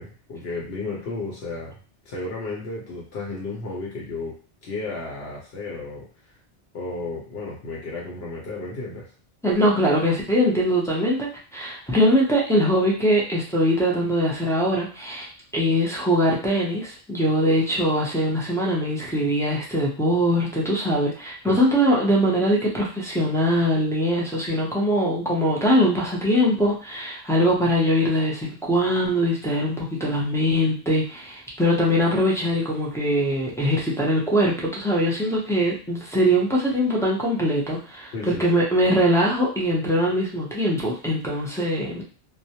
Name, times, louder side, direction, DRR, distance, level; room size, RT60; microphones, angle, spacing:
voice 1, 0.0-1.8 2.1-4.3 4.6-6.1 6.7-9.1 21.5-21.6 38.1-38.6, left 3 dB, 75° left, -3 dB, 0.9 m, -33 dB
voice 2, 9.4-38.1 38.4-42.0, equal, 5° left, -5 dB, 0.3 m, -22 dB
2.2 x 2.1 x 2.8 m, 0.39 s
omnidirectional pair, 1.1 m